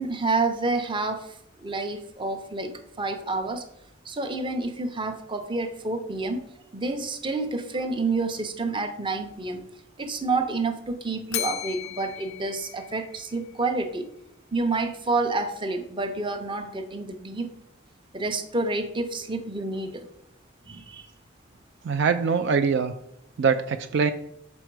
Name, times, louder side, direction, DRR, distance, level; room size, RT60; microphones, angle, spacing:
voice 1, 0.0-3.7 4.0-6.4 6.7-9.7 10.0-14.1 14.5-17.5 18.1-20.1 20.7-21.0, right 3 dB, 25° right, 6 dB, 0.6 m, -29 dB
Bell, 11.3-13.5, left 14 dB, 80° left, 0.4 m, -35 dB
voice 2, 21.8-22.9 23.4-24.1, right 5 dB, 60° right, 8 dB, 0.4 m, -23 dB
6.2 x 4.5 x 4.6 m, 0.78 s
head